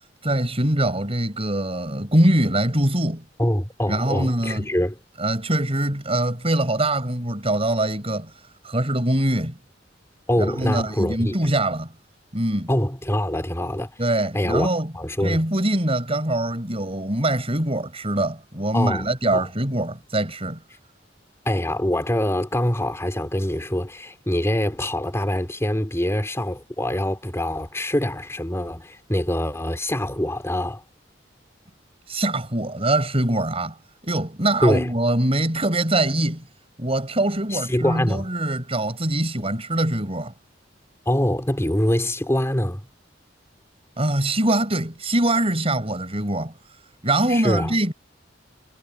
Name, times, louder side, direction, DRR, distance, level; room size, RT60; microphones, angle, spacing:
voice 1, 0.2-3.2 3.9-4.7 5.2-8.3 8.6-9.6 10.4-11.9 12.3-12.7 14.0-14.9 15.2-20.6 32.1-33.8 34.0-36.4 36.8-40.3 44.0-46.5 47.0-47.9, right 1 dB, 35° right, 5.7 m, -23 dB
voice 2, 3.4-5.0 10.3-11.4 12.7-13.9 14.3-14.7 14.9-15.4 18.7-19.1 19.3-19.4 21.4-30.8 34.6-34.9 37.5-38.3 41.0-42.8 47.3-47.7, left 1 dB, 15° left, 3.2 m, -24 dB
head